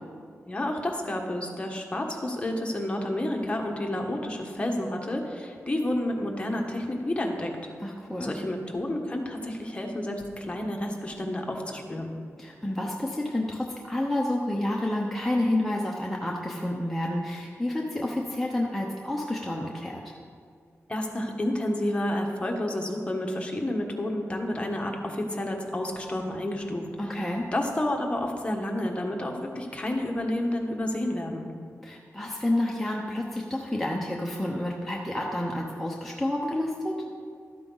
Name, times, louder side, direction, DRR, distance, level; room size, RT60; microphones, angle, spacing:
voice 1, 0.5-7.6 8.2-12.1 20.9-26.9 27.5-31.5, left 1 dB, 20° left, 1 dB, 1.3 m, -30 dB
voice 2, 7.8-8.3 12.4-20.0 27.0-27.4 31.8-36.9, left 1 dB, 5° left, -2 dB, 0.9 m, -29 dB
12.5 x 8.7 x 4.0 m, 2.2 s
wide cardioid pair, 110°, 5 cm